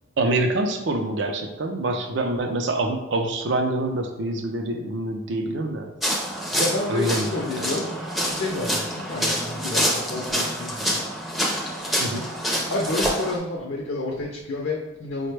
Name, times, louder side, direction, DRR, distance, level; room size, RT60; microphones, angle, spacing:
voice 1, 0.2-5.9 6.9-7.3 7.6-7.8 12.0-12.3, right 2 dB, 60° right, 4 dB, 0.5 m, -26 dB
sound 1, 6.0-13.4, equal, ahead, 0.5 m, -26 dB
voice 2, 6.5-7.9 8.2-11.0 12.7-15.3, left 2 dB, 55° left, -2 dB, 0.5 m, -29 dB
4.9 x 2.2 x 3.2 m, 1.0 s
head